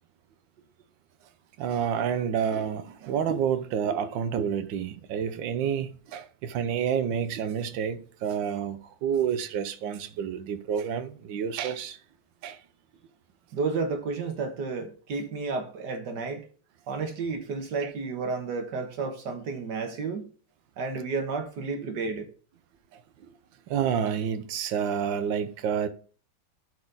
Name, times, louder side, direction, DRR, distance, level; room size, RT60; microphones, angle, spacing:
voice 1, 1.6-12.0 12.4-12.6 17.8-17.9 22.9-23.3 23.7-25.9, right 8 dB, 90° right, 1.5 m, -29 dB
voice 2, 13.5-16.5 16.9-20.3 20.8-22.3, right 4 dB, 70° right, 1.8 m, -31 dB
11.5 x 4.2 x 4.0 m
omnidirectional pair, 2.0 m